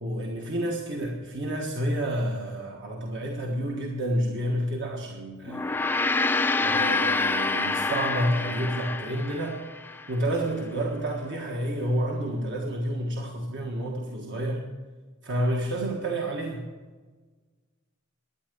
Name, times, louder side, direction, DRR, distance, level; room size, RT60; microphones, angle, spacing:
voice 1, 0.0-5.7 6.6-9.7 10.1-14.7 15.2-16.6, right 1 dB, 55° right, 0 dB, 1.5 m, -29 dB
Gong, 5.5-10.1, left 3 dB, 10° left, 0.3 m, -27 dB
13.0 x 9.6 x 6.8 m, 1.4 s
head